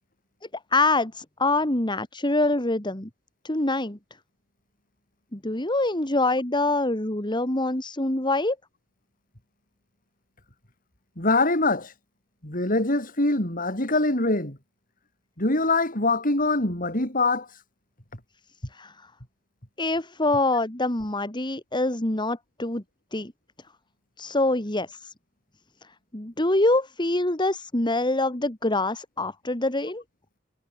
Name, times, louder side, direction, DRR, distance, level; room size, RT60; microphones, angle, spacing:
voice 1, 0.7-3.1 3.4-4.0 5.3-8.6 18.7-18.9 19.8-22.8 23.1-23.3 24.2-25.1 26.1-30.0, left 2 dB, 25° left, 2.6 m, -25 dB
voice 2, 11.2-11.9 12.4-14.6 15.4-17.5, left 2 dB, 45° left, 7.4 m, -23 dB
head